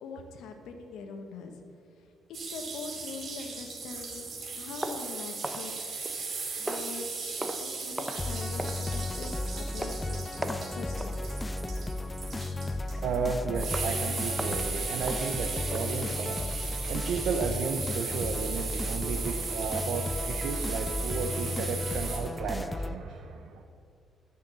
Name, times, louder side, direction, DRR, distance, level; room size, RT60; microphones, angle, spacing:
voice 1, 0.0-1.5 2.5-5.9 6.6-11.1, left 4 dB, 85° left, 5 dB, 1.2 m, -43 dB
sound 1, 2.3-22.2, right 4 dB, 50° right, 2.3 m, -37 dB
sound 2, 4.8-6.3 6.7-7.0 7.4-7.7 8.0-8.3 8.6-8.8 9.2-9.4 9.8-10.0 10.4-10.7 11.0-11.2 11.6-11.9 12.3-12.4 12.9-13.0 13.6-14.0 14.4-15.9, right 1 dB, 5° right, 0.8 m, -38 dB
sound 3, 8.2-23.0, left 2 dB, 20° left, 0.3 m, -34 dB
voice 2, 13.0-23.6, right 5 dB, 75° right, 4 dB, 0.8 m, -33 dB
10.5 x 6.5 x 6.9 m, 2.4 s
cardioid pair, 90°, 0 cm